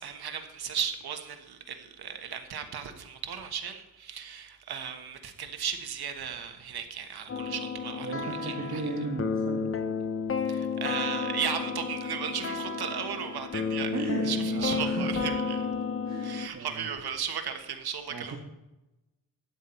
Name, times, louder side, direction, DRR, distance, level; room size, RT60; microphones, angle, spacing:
voice 1, 0.0-8.8 10.5-15.6 16.2-18.4, right 7 dB, 90° right, 6 dB, 1.4 m, -36 dB
sound 1, 7.3-16.5, left 5 dB, 35° left, 0.8 m, -31 dB
voice 2, 8.0-9.7 13.9-15.3 16.0-16.9 18.1-18.4, right 3 dB, 50° right, -1 dB, 1.7 m, -35 dB
12.0 x 9.4 x 4.4 m, 0.99 s
wide cardioid pair, 125°, 37 cm